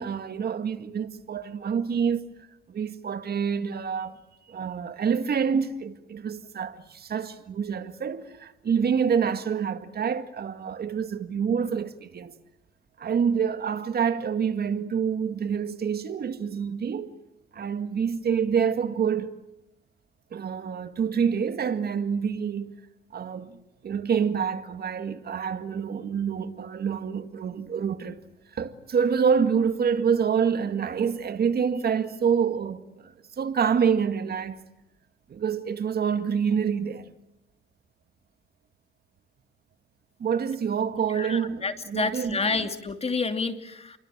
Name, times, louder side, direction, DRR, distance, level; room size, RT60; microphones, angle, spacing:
voice 1, 0.0-2.3 2.7-4.2 4.5-12.4 13.0-17.1 17.5-19.4 20.3-22.8 23.1-23.6 23.8-28.2 28.5-34.6 35.3-37.1 40.2-42.6, right 7 dB, 50° right, 2.1 m, -27 dB
voice 2, 41.2-44.0, left 4 dB, 30° left, 2.7 m, -29 dB
29.5 x 23.5 x 7.5 m
cardioid pair, 90°, 20 cm